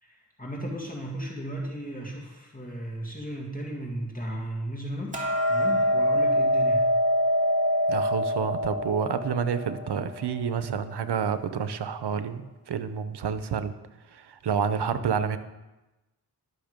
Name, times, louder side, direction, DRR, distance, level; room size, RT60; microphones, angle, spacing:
voice 1, 0.0-5.2 5.5-6.9, right 1 dB, 20° left, -2 dB, 2.2 m, -35 dB
Hammer, 5.1-11.4, equal, 20° right, 2.4 m, -25 dB
voice 2, 7.9-12.4 12.7-13.7 14.1-15.4, right 7 dB, 80° right, 12 dB, 0.8 m, -29 dB
12.0 x 6.4 x 5.2 m, 1.0 s
cardioid pair, 50°, 40 cm